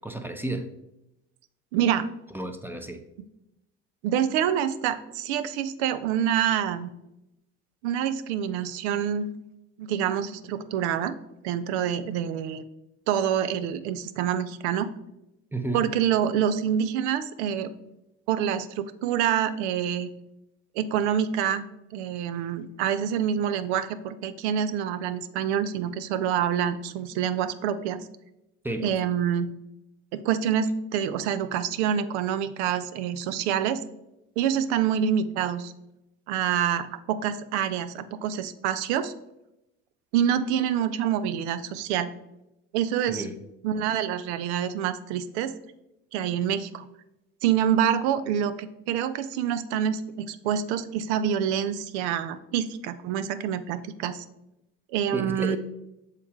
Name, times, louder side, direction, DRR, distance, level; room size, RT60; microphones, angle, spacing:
voice 1, 0.0-0.7 2.3-3.0 15.5-15.9 28.6-28.9 43.1-43.4 55.1-55.6, right 2 dB, 5° right, 7 dB, 0.6 m, -32 dB
voice 2, 1.7-2.1 4.0-6.9 7.8-9.3 9.8-11.1 11.4-12.6 13.1-14.9 15.7-17.7 18.3-20.1 20.8-28.1 28.8-29.5 30.1-33.8 34.4-35.7 36.3-39.1 40.1-42.1 42.7-43.3 43.6-45.5 46.1-46.9 47.4-54.2 54.9-55.6, right 9 dB, 85° right, 13 dB, 0.5 m, -26 dB
6.5 x 4.1 x 3.7 m, 0.88 s
supercardioid pair, 75°, 33 cm